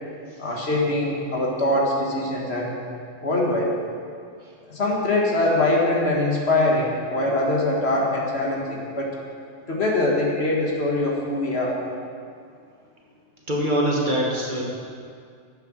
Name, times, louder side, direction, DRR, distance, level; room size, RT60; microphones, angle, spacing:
voice 1, 0.4-2.7 3.2-3.8 4.7-9.2 9.7-11.8, left 2 dB, 55° left, -2 dB, 1.8 m, -23 dB
voice 2, 13.5-14.6, equal, 40° right, -2 dB, 1.6 m, -23 dB
10.0 x 7.7 x 6.3 m, 2.2 s
omnidirectional pair, 1.3 m